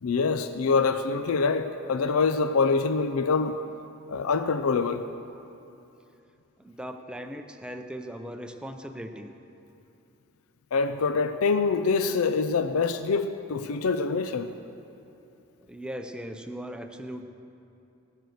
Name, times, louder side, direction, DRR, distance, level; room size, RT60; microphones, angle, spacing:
voice 1, 0.0-3.6 4.1-5.0 10.7-14.5, left 4 dB, 85° left, 10 dB, 0.5 m, -25 dB
voice 2, 6.6-9.3 15.7-17.2, equal, 5° right, 5 dB, 0.6 m, -38 dB
20.0 x 6.7 x 6.5 m, 2.7 s
head